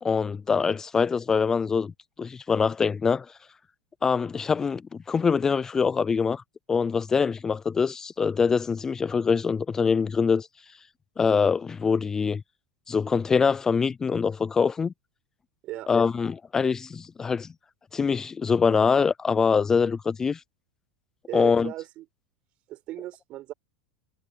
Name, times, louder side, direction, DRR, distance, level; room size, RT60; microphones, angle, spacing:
voice 1, 0.0-1.9 2.2-3.3 4.0-4.8 5.1-6.4 6.7-10.5 11.2-12.4 12.9-14.9 15.9-17.5 17.9-20.4 21.3-21.7, left 5 dB, 20° left, 0.3 m, -24 dB
voice 2, 21.3-22.1 22.7-23.5, right 15 dB, 45° right, 6.0 m, -37 dB
hypercardioid pair, 100°, 3 cm